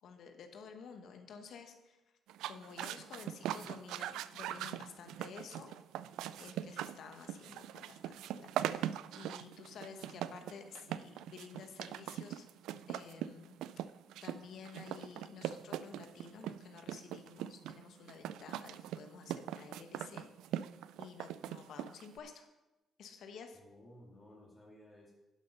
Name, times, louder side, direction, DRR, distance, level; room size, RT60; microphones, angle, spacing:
voice 1, 0.0-2.0 2.4-5.7 6.4-12.5 12.9-13.6 14.2-20.7 21.0-22.4 23.0-23.6, left 6 dB, 70° left, 6 dB, 1.2 m, -52 dB
sound 1, 2.3-22.2, right 11 dB, 90° right, 0.3 m, -41 dB
voice 2, 23.5-25.1, left 1 dB, 15° left, -4 dB, 2.2 m, -57 dB
11.5 x 5.9 x 5.3 m, 1.0 s
cardioid pair, 90°, 0 cm